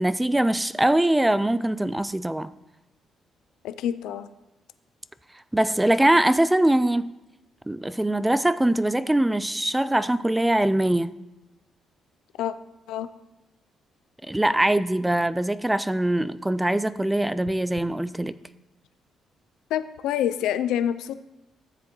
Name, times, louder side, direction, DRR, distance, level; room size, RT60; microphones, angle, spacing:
voice 1, 0.0-2.5 5.5-7.1 7.7-11.1 14.3-18.3, right 1 dB, 10° right, 0.3 m, -22 dB
voice 2, 3.6-4.3 12.4-12.5 12.9-13.1 19.7-21.1, left 10 dB, 90° left, 0.4 m, -26 dB
13.5 x 7.5 x 3.0 m
cardioid pair, 90°, 0 cm